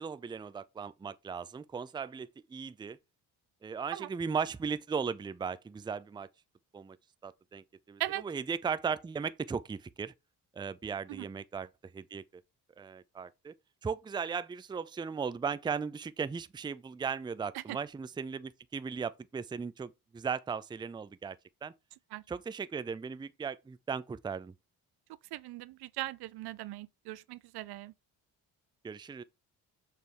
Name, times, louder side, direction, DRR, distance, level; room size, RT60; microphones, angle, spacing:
voice 1, 0.0-3.0 3.6-6.3 6.7-7.0 7.2-10.1 10.5-11.7 11.9-12.4 12.8-13.5 13.8-21.7 22.3-24.5 28.8-29.2, right 6 dB, 10° right, 0.4 m, -37 dB
voice 2, 25.3-27.9, right 16 dB, 70° right, 0.6 m, -39 dB
6.8 x 3.4 x 4.7 m
supercardioid pair, 70°, 40 cm